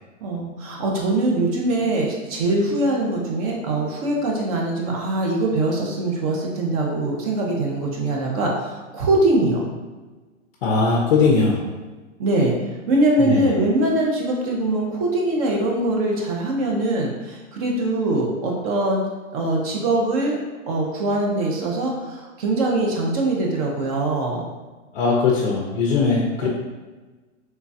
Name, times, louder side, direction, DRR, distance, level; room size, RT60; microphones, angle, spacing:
voice 1, 0.2-9.7 12.2-12.6 12.9-19.0 19.3-20.4 20.7-24.5 26.4-26.5, right 2 dB, 30° right, -1 dB, 0.5 m, -22 dB
voice 2, 10.6-11.6 13.2-13.4 24.9-26.5, left 4 dB, 45° left, -2 dB, 0.5 m, -19 dB
3.2 x 2.2 x 2.6 m, 1.3 s
hypercardioid pair, 135°, 38 cm